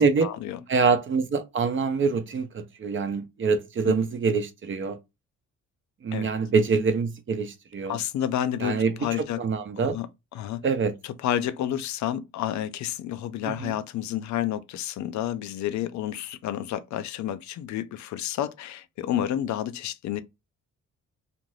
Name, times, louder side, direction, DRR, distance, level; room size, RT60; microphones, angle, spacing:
voice 1, 0.0-0.6 3.9-4.0 6.1-6.3 7.9-9.4 9.8-10.1 10.3-10.6 11.0-20.2, left 11 dB, 70° left, 0.5 m, -30 dB
voice 2, 0.7-5.0 6.0-8.0 8.6-8.9 9.4-10.0 10.6-10.9 13.5-13.7, right 4 dB, 40° right, 0.6 m, -25 dB
2.6 x 2.5 x 3.1 m
cardioid pair, 90°, 30 cm